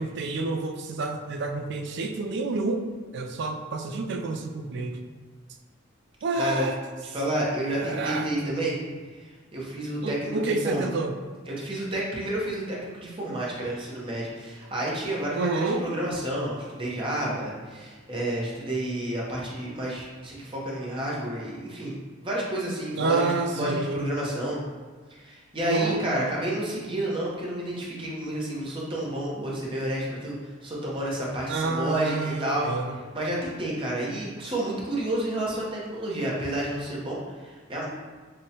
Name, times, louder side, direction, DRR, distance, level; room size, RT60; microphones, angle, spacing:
voice 1, 0.0-2.9 3.1-5.0 6.2-6.7 7.8-8.3 10.0-11.1 15.4-15.9 23.0-24.0 25.7-26.0 31.5-33.0, right 3 dB, 55° right, 5 dB, 0.3 m, -28 dB
voice 2, 6.3-6.7 7.0-8.8 9.0-10.9 11.5-24.6 25.1-32.7 33.1-37.9, right 1 dB, 25° right, -4 dB, 0.7 m, -30 dB
5.1 x 2.1 x 2.8 m, 1.4 s
head